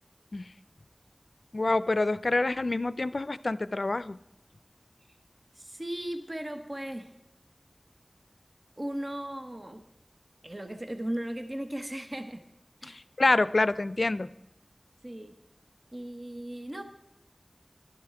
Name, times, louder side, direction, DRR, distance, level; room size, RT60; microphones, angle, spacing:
voice 1, 1.5-4.2 12.8-14.3, left 2 dB, 85° left, 16 dB, 0.3 m, -27 dB
voice 2, 5.5-7.1 8.8-9.8 10.4-12.4 12.8-13.0 15.0-15.3 15.9-16.8, right 1 dB, 45° right, 7 dB, 0.9 m, -37 dB
12.0 x 9.7 x 4.7 m, 0.85 s
wide cardioid pair, 45°, 0 cm